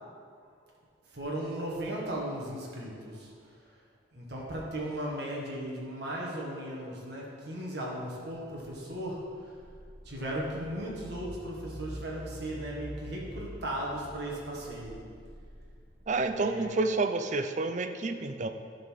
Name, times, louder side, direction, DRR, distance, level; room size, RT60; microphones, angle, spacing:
voice 1, 1.1-3.3 4.1-9.2 10.0-15.0 16.3-16.7, right 1 dB, 55° right, -3 dB, 1.6 m, -36 dB
sound 1, 9.1-16.7, equal, 20° left, 1.8 m, -46 dB
voice 2, 16.1-18.5, right 3 dB, 40° right, 8 dB, 0.4 m, -29 dB
10.5 x 4.1 x 6.4 m, 2.2 s
head